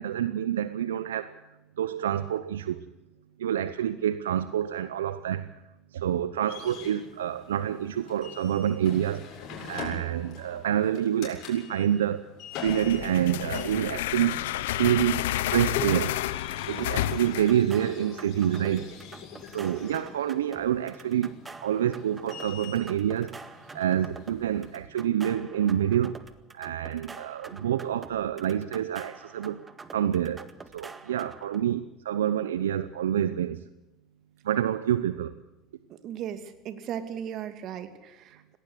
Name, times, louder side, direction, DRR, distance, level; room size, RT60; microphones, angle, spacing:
voice 1, 0.0-1.4 1.8-2.8 3.4-5.6 5.9-9.4 9.6-12.3 12.6-14.4 14.8-16.2 16.7-18.9 19.5-21.3 21.6-23.4 23.7-26.2 26.5-30.5 30.7-33.6 34.4-35.4, right 10 dB, 85° right, 0.7 m, -27 dB
sound 1, 6.5-24.8, left 6 dB, 60° left, 7.1 m, -43 dB
sound 2, 12.6-17.7, left 14 dB, 80° left, 0.8 m, -30 dB
sound 3, 16.8-31.6, right 4 dB, 20° right, 1.7 m, -47 dB
voice 2, 35.9-38.6, right 9 dB, 55° right, 2.5 m, -37 dB
19.0 x 18.0 x 8.2 m
hypercardioid pair, 75°, 0 cm